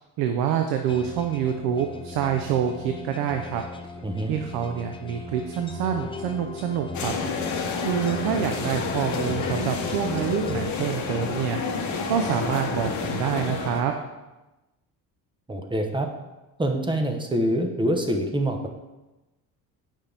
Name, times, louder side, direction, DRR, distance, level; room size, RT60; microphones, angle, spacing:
voice 1, 0.2-3.6 4.3-7.1 7.8-11.6 12.1-13.9, right 8 dB, 90° right, 5 dB, 0.7 m, -26 dB
sound 1, 0.9-11.5, left 4 dB, 15° left, 0.5 m, -38 dB
voice 2, 4.0-4.3 15.5-16.1 16.6-18.7, right 1 dB, 15° right, 4 dB, 0.9 m, -25 dB
sound 2, 6.9-13.8, left 4 dB, 50° left, 1.2 m, -29 dB
9.1 x 5.5 x 3.5 m, 1.1 s
cardioid pair, 110°, 37 cm